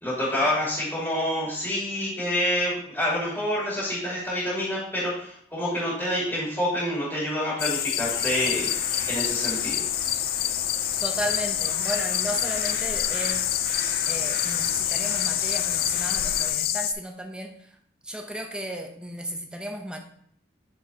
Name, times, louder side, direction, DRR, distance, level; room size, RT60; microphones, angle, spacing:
voice 1, 0.0-8.7 9.0-9.9, left 1 dB, 10° left, -7 dB, 2.3 m, -27 dB
sound 1, 7.6-16.9, left 12 dB, 55° left, 0.3 m, -27 dB
sound 2, 8.0-16.5, right 1 dB, 55° right, 1.6 m, -39 dB
voice 2, 11.0-13.5 14.1-17.5 18.0-20.0, right 1 dB, 5° right, 4 dB, 0.5 m, -34 dB
8.6 x 4.3 x 2.7 m, 0.64 s
head